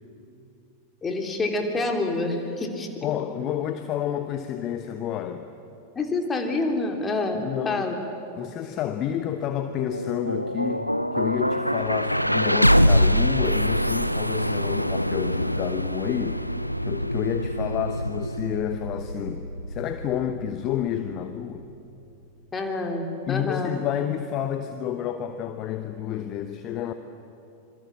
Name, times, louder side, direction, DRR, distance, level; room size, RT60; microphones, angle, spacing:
voice 1, 1.0-2.9 5.9-8.0 22.5-23.8, left 2 dB, 20° left, 3 dB, 3.3 m, -27 dB
voice 2, 3.0-5.5 7.3-7.9 8.4-16.4 16.8-21.7 23.3-26.9, left 10 dB, 35° left, 9 dB, 1.0 m, -30 dB
sound 1, 9.7-21.7, equal, 90° left, 0.5 m, -25 dB
26.0 x 23.5 x 7.4 m, 2.7 s
figure-of-eight pair, 90°, 0 cm